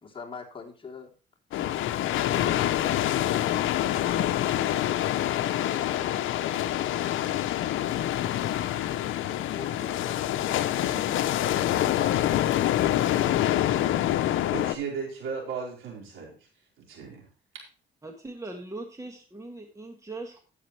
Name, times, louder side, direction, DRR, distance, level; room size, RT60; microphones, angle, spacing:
voice 1, 0.0-1.1 9.3-12.7, left 5 dB, 25° left, -2 dB, 3.2 m, -44 dB
sound 1, 1.5-14.7, left 12 dB, 80° left, 0.7 m, -26 dB
voice 2, 14.5-16.3 16.8-17.3 17.5-17.6, right 5 dB, 80° right, -1 dB, 4.4 m, -35 dB
voice 3, 18.0-20.4, right 2 dB, 15° right, 3 dB, 1.7 m, -40 dB
12.0 x 9.3 x 3.2 m, 0.36 s
cardioid pair, 90°, 20 cm